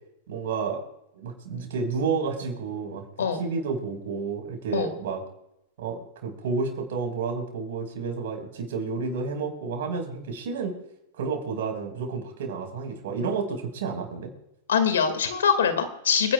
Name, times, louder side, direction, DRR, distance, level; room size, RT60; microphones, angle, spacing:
voice 1, 0.3-0.8 1.1-3.0 3.4-5.2 5.8-10.7 11.2-14.3, right 5 dB, 70° right, 3 dB, 5.0 m, -30 dB
voice 2, 14.7-16.3, left 7 dB, 85° left, 9 dB, 2.1 m, -23 dB
29.5 x 10.5 x 2.4 m, 0.85 s
hypercardioid pair, 110°, 0 cm